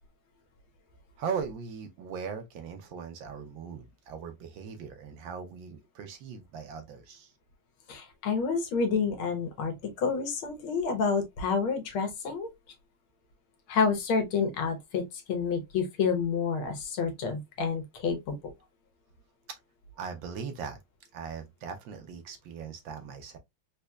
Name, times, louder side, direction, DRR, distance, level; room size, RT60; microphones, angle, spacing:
voice 1, 1.2-7.3 20.0-20.8 21.1-23.4, right 6 dB, 70° right, 1.2 m, -39 dB
voice 2, 7.9-12.5 13.7-18.3, left 5 dB, 75° left, 1.7 m, -29 dB
4.2 x 2.8 x 2.2 m
omnidirectional pair, 2.4 m